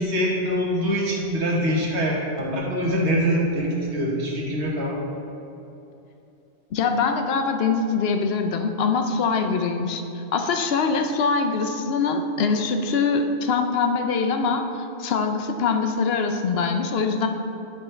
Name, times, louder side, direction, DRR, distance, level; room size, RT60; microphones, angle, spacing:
voice 1, 0.0-5.0, equal, 85° right, -3 dB, 1.5 m, -24 dB
voice 2, 6.7-17.3, left 4 dB, 70° left, 5 dB, 0.8 m, -23 dB
9.8 x 3.6 x 4.3 m, 2.8 s
omnidirectional pair, 1.1 m